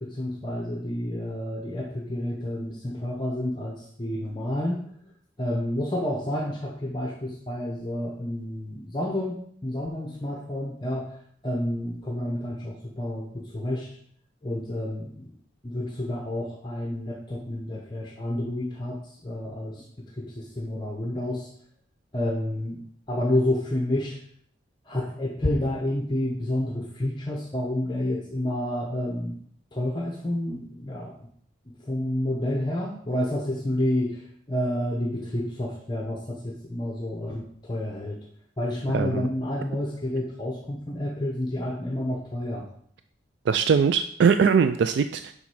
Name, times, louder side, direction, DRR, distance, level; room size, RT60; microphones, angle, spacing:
voice 1, 0.0-4.8 5.4-11.1 11.4-13.9 14.4-15.3 15.6-19.8 20.2-21.5 22.1-22.8 23.1-24.2 24.9-29.4 29.7-31.1 31.9-34.2 34.5-38.2 38.6-42.6, left 1 dB, 25° left, 0 dB, 0.8 m, -29 dB
voice 2, 38.9-39.3 43.5-45.3, right 6 dB, 65° right, 10 dB, 0.3 m, -21 dB
7.1 x 5.2 x 4.8 m, 0.64 s
head